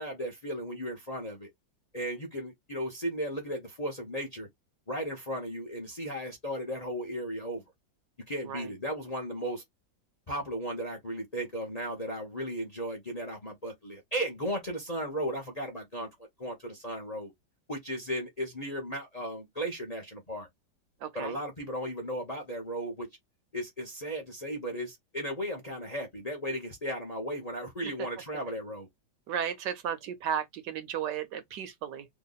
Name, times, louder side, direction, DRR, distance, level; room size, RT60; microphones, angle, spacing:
voice 1, 0.0-1.5 1.9-4.5 4.9-7.6 8.3-9.6 10.3-16.1 16.4-17.3 17.7-20.5 21.1-23.1 23.5-28.9, equal, 25° left, 0.9 m, -35 dB
voice 2, 21.0-21.3 29.3-32.1, right 8 dB, 70° right, 1.3 m, -34 dB
3.1 x 2.5 x 4.0 m
omnidirectional pair, 2.1 m